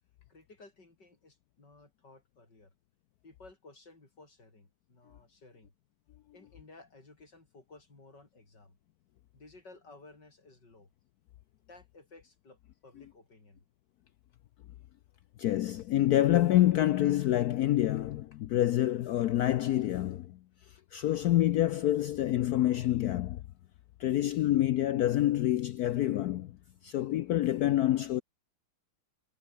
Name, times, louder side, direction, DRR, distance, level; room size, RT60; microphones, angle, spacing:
voice 1, 0.3-2.7 3.2-5.7 6.3-8.8 9.3-10.9 11.7-13.6, left 3 dB, 55° left, 6.0 m, -56 dB
voice 2, 15.4-20.4 20.7-23.4 24.0-26.6 26.8-28.2, left 13 dB, 80° left, 0.8 m, -27 dB
omnidirectional pair, 2.3 m